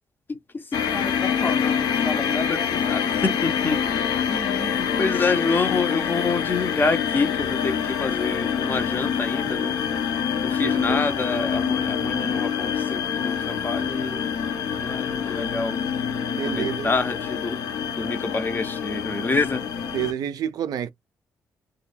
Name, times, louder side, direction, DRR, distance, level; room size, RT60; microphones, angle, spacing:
voice 1, 0.3-3.8 4.3-9.8 10.4-14.2 14.8-15.8 16.4-17.6 18.0-19.7, left 3 dB, 30° left, 0.5 m, -27 dB
sound 1, 0.7-20.1, left 7 dB, 90° left, 0.5 m, -26 dB
voice 2, 10.6-11.0 16.4-16.9 19.9-20.9, right 9 dB, 75° right, 0.4 m, -28 dB
2.2 x 2.0 x 3.1 m
cardioid pair, 85°, 7 cm